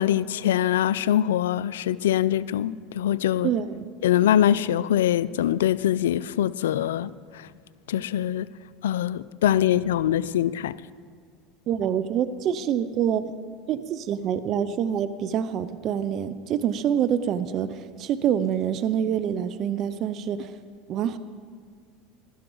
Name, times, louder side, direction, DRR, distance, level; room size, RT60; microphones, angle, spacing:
voice 1, 0.0-3.5 4.0-7.5 7.9-8.5 8.8-10.8, left 11 dB, 85° left, 0.3 m, -23 dB
voice 2, 3.4-3.9 11.7-13.3 13.7-20.5 20.9-21.2, right 9 dB, 50° right, 0.6 m, -26 dB
15.5 x 12.5 x 3.9 m
hypercardioid pair, 95°, 0 cm